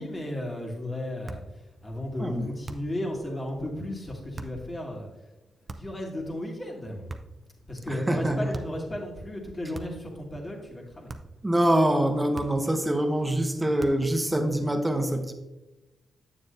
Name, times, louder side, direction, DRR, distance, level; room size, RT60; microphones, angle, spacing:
voice 1, 0.0-5.1 5.7-7.2 7.7-11.1, left 1 dB, 30° left, -1 dB, 2.0 m, -34 dB
sound 1, 1.2-1.6 2.6-3.0 4.3-4.6 5.7-6.1 7.1-7.5 8.5-8.9 9.7-10.1 11.1-11.4 12.3-12.8 13.8-14.2, right 2 dB, 40° right, 0.6 m, -41 dB
voice 2, 7.9-8.5 11.4-15.3, right 1 dB, 15° right, 6 dB, 1.0 m, -25 dB
8.5 x 7.1 x 2.6 m, 1.0 s
cardioid pair, 60°, 0 cm